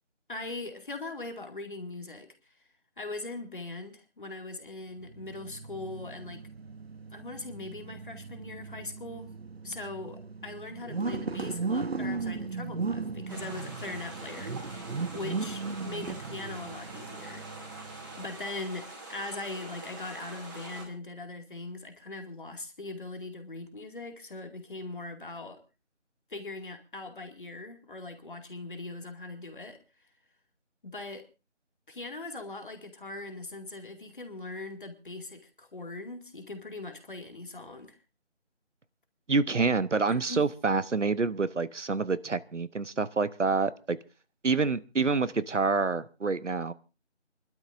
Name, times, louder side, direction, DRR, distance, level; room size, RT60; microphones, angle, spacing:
voice 1, 0.3-2.5 3.0-6.4 7.1-9.3 9.6-14.7 15.1-17.4 17.7-17.8 18.2-25.6 26.3-29.8 30.8-31.3 31.9-38.0 40.1-40.4, left 2 dB, 45° left, 5 dB, 2.4 m, -40 dB
sound 1, 5.0-18.4, right 4 dB, 60° right, 0.8 m, -37 dB
sound 2, 13.3-20.8, right 2 dB, 15° right, 2.7 m, -45 dB
voice 2, 39.3-44.0 44.4-46.7, right 4 dB, 85° right, 15 dB, 1.0 m, -27 dB
28.5 x 12.0 x 2.6 m, 0.30 s
figure-of-eight pair, 165°, 35 cm